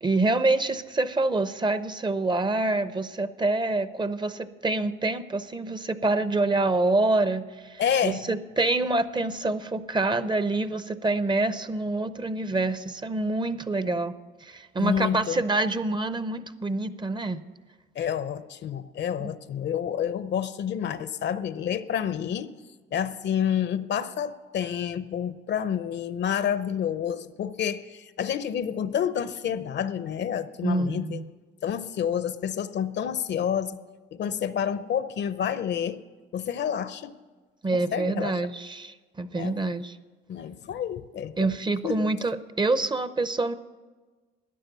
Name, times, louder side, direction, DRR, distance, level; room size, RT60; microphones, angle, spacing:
voice 1, 0.0-14.1 14.4-17.4 19.2-19.3 30.6-31.3 37.6-40.0 41.4-43.5, right 2 dB, 25° right, 14 dB, 0.6 m, -26 dB
voice 2, 7.8-8.2 14.8-15.4 18.0-22.5 22.9-31.2 31.6-33.8 34.1-36.0 36.3-37.1 37.7-38.3 39.3-39.6 40.3-41.5 41.8-42.1, left 8 dB, 60° left, 14 dB, 0.7 m, -29 dB
14.0 x 9.7 x 6.8 m, 1.3 s
cardioid pair, 90°, 20 cm